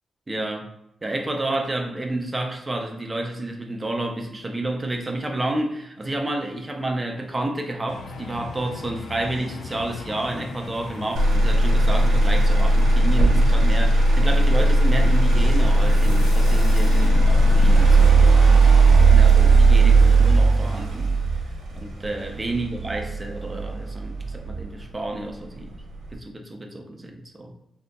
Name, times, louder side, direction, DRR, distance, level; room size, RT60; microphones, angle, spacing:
voice 1, 0.3-0.7 1.0-21.5 21.8-25.7 26.1-27.5, right 2 dB, 15° right, 2 dB, 0.4 m, -30 dB
sound 1, 7.9-18.1, left 3 dB, 85° left, 0.4 m, -37 dB
Motor vehicle (road), 11.2-25.2 25.6-26.1, right 2 dB, 90° right, 1.0 m, -17 dB
3.8 x 2.7 x 2.3 m, 0.81 s
wide cardioid pair, 170°, 0 cm